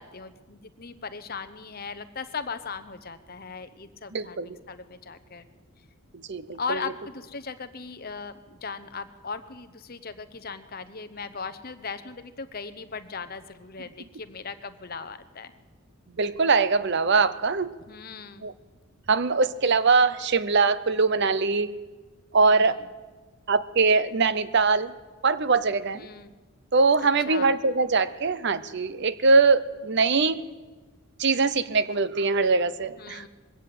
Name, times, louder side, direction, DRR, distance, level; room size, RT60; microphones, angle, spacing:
voice 1, 0.0-5.5 6.6-15.5 17.9-18.5 22.4-22.9 25.9-26.3 27.3-27.6 33.0-33.3, left 5 dB, 40° left, 11 dB, 0.9 m, -38 dB
voice 2, 4.1-4.5 6.3-6.6 16.2-17.7 18.4-18.5 19.1-21.7 22.3-22.8 23.5-24.9 25.2-26.1 26.7-30.4 31.2-33.2, right 4 dB, 50° right, 15 dB, 0.6 m, -22 dB
21.5 x 16.5 x 7.7 m, 1.3 s
head